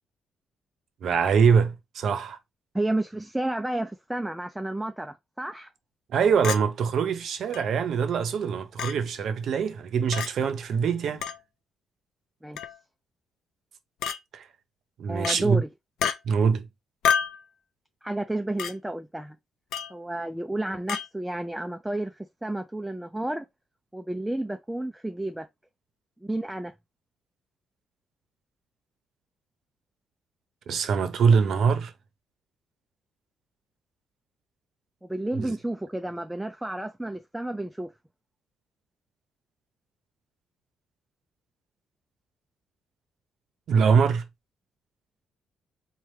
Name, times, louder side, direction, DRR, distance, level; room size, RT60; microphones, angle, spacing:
voice 1, 1.0-2.4 6.1-11.3 14.3-14.5 15.0-15.6 16.2-16.7 30.7-31.9 35.3-35.5 43.7-44.2, right 6 dB, 65° right, 0.7 m, -23 dB
voice 2, 2.7-5.7 12.4-12.6 15.1-15.7 18.0-19.3 19.9-23.4 23.9-25.5 26.2-26.7 35.0-37.9, right 1 dB, 5° right, 0.4 m, -31 dB
Chink clink, 6.4-6.6 7.5-7.6 8.8-8.9 10.1-10.3 11.2-11.4 12.6-12.8 14.0-14.2 15.2-15.4 16.0-16.2 17.0-17.4 18.6-18.7 19.7-19.9 20.9-21.1, left 7 dB, 85° left, 0.5 m, -27 dB
3.1 x 2.3 x 4.3 m
cardioid pair, 90°, 0 cm